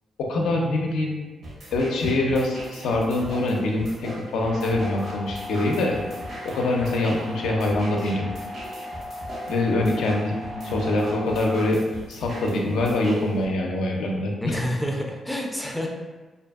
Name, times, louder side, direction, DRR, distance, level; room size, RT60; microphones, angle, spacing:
voice 1, 0.2-1.1 1.7-6.0 6.4-8.3 9.5-10.3 10.6-11.8 12.1-14.6, left 2 dB, 90° left, 0 dB, 0.4 m, -24 dB
sound 1, 1.4-13.4, equal, 65° right, 1.0 m, -40 dB
sound 2, 4.4-11.6, left 1 dB, 85° right, 0.5 m, -37 dB
voice 2, 10.5-10.9 14.4-15.9, equal, ahead, 0 dB, 0.4 m, -29 dB
2.5 x 2.5 x 2.3 m, 1.2 s
cardioid pair, 90°, 0 cm